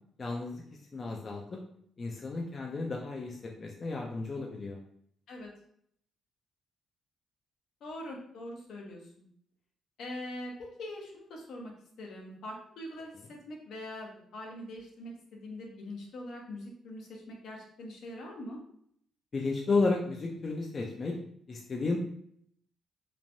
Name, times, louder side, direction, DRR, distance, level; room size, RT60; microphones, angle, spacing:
voice 1, 0.2-0.6 0.9-1.6 2.0-4.8 19.3-21.2 21.5-22.0, left 3 dB, 40° left, 0 dB, 0.4 m, -32 dB
voice 2, 7.8-9.3 10.0-11.7 12.0-18.6, left 1 dB, 75° left, -1 dB, 0.7 m, -43 dB
3.1 x 2.1 x 2.5 m, 0.67 s
cardioid pair, 90°, 0 cm